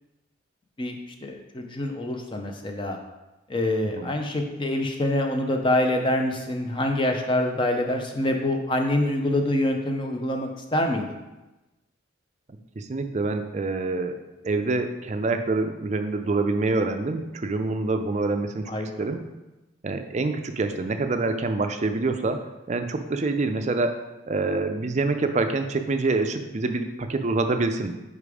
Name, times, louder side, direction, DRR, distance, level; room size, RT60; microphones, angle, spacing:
voice 1, 1.2-3.0 3.5-11.2 18.7-18.9, left 1 dB, 25° left, 4 dB, 0.6 m, -25 dB
voice 2, 12.8-14.1 14.4-18.7 19.0-19.2 19.8-22.4 22.7-24.0 24.3-27.9, right 3 dB, 35° right, 7 dB, 0.4 m, -26 dB
5.1 x 4.8 x 4.9 m, 1.1 s
head